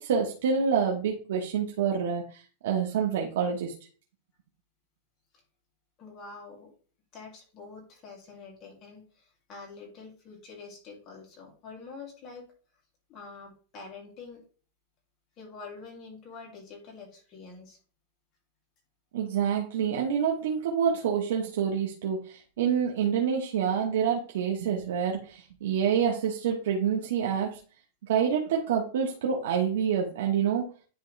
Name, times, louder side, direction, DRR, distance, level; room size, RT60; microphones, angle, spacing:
voice 1, 0.0-3.7 19.1-27.6 28.1-30.6, right 7 dB, 75° right, 0 dB, 1.2 m, -27 dB
voice 2, 6.0-6.7 7.1-12.5 13.1-14.4 15.4-17.8, left 4 dB, 30° left, -1 dB, 2.6 m, -46 dB
10.0 x 3.8 x 3.3 m, 0.38 s
supercardioid pair, 160°, 0 cm